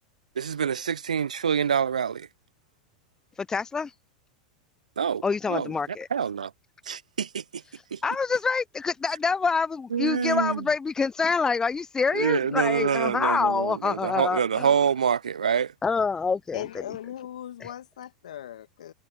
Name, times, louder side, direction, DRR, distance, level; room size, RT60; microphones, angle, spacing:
voice 1, 0.4-2.3 5.0-5.2 5.5-5.7 6.1-6.5 6.9-7.6 7.9-8.0 9.9-10.6 12.1-15.7, right 7 dB, 80° right, 0.3 m, -26 dB
voice 2, 3.4-3.9 5.2-6.1 8.0-14.7 15.8-16.6, left 5 dB, 15° left, 0.6 m, -26 dB
voice 3, 16.5-18.9, left 11 dB, 70° left, 1.6 m, -38 dB
hypercardioid pair, 90°, 4 cm